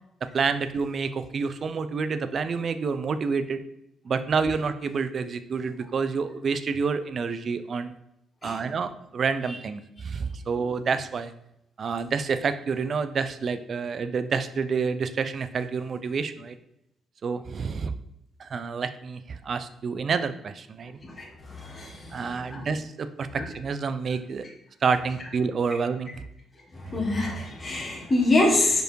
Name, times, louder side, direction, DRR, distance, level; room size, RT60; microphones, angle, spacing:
voice 1, 0.3-3.6 4.0-8.0 8.4-11.3 11.8-16.6 17.2-17.9 18.4-21.0 22.1-24.4 24.8-26.1, right 5 dB, 50° right, 12 dB, 0.5 m, -28 dB
voice 2, 21.0-22.7 23.3-23.4 26.7-28.8, left 2 dB, 25° left, -2 dB, 1.6 m, -26 dB
5.2 x 4.6 x 4.5 m, 0.80 s
cardioid pair, 90°, 0 cm